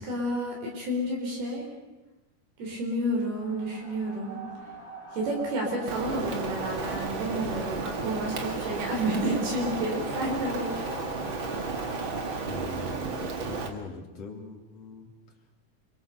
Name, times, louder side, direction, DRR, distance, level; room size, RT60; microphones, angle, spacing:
voice 1, 0.0-1.7 2.6-4.4 5.1-11.0, right 1 dB, 75° right, 0 dB, 6.0 m, -30 dB
sound 1, 3.3-12.4, right 1 dB, 25° left, 4.7 m, -42 dB
Rain, 5.9-13.7, right 4 dB, 40° right, 2.1 m, -33 dB
voice 2, 12.5-15.1, left 4 dB, 45° left, 2 dB, 3.8 m, -42 dB
29.5 x 23.5 x 6.7 m, 1.1 s
omnidirectional pair, 4.4 m